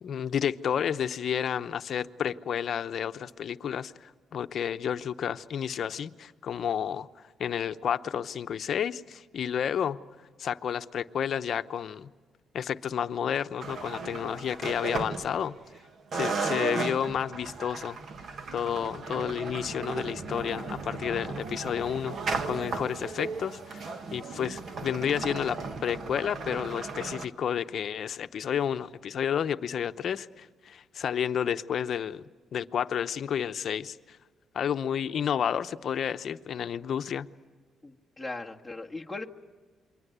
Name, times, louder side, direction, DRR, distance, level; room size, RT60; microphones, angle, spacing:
voice 1, 0.0-10.0 10.4-12.1 12.5-15.6 16.1-18.0 18.5-22.2 22.5-32.2 32.5-34.2 34.5-37.3, left 8 dB, 60° left, 0.8 m, -31 dB
sound 1, 13.6-15.8 16.1-27.3, right 4 dB, 55° right, 1.7 m, -35 dB
voice 2, 37.8-39.3, left 2 dB, ahead, 1.6 m, -39 dB
27.5 x 23.5 x 8.1 m
cardioid pair, 100°, 0 cm